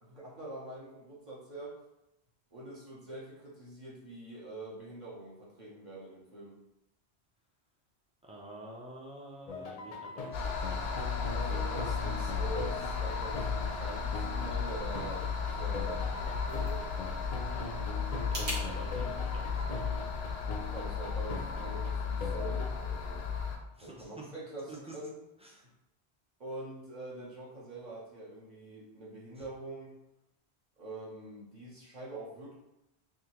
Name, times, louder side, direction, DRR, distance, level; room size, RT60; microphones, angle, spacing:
voice 1, 0.0-1.8 2.5-6.6 11.3-16.9 18.3-19.1 20.6-23.3 23.8-25.1 26.4-29.9 30.8-32.5, right 2 dB, 45° right, -6 dB, 1.0 m, -45 dB
voice 2, 8.2-10.5 17.4-17.8 18.3-20.3 23.7-24.2 24.7-24.9 25.4-25.7 29.4-29.5, right 1 dB, 10° right, -2 dB, 0.4 m, -49 dB
sound 1, 9.5-22.7, left 3 dB, 50° left, 0.5 m, -42 dB
sound 2, 10.3-23.6, left 5 dB, 75° left, 0.8 m, -34 dB
sound 3, 16.0-18.6, equal, 85° right, 1.5 m, -43 dB
3.7 x 2.8 x 3.0 m, 0.91 s
omnidirectional pair, 1.1 m